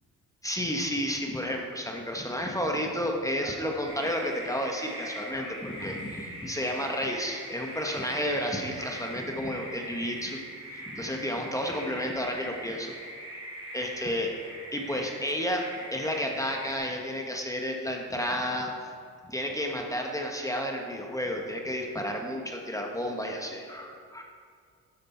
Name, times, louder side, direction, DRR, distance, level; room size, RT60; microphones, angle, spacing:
voice 1, 0.4-10.4 10.7-12.9 13.7-14.3 14.7-18.7 19.2-24.2, equal, 10° left, 1 dB, 1.0 m, -31 dB
sound 1, 3.9-16.8, right 1 dB, 20° right, 2.5 m, -42 dB
12.5 x 5.1 x 4.2 m, 2.1 s
cardioid pair, 90°, 30 cm